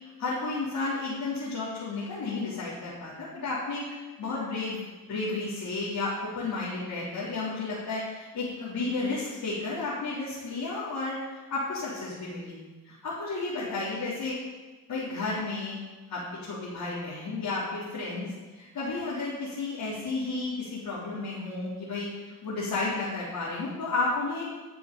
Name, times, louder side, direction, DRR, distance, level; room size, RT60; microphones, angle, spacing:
voice 1, 0.2-4.8 5.1-12.6 12.8-14.4 14.9-15.8 16.1-18.3 18.5-24.5, left 3 dB, 55° left, -9 dB, 4.2 m, -32 dB
11.5 x 7.0 x 7.1 m, 1.3 s
hypercardioid pair, 50°, 41 cm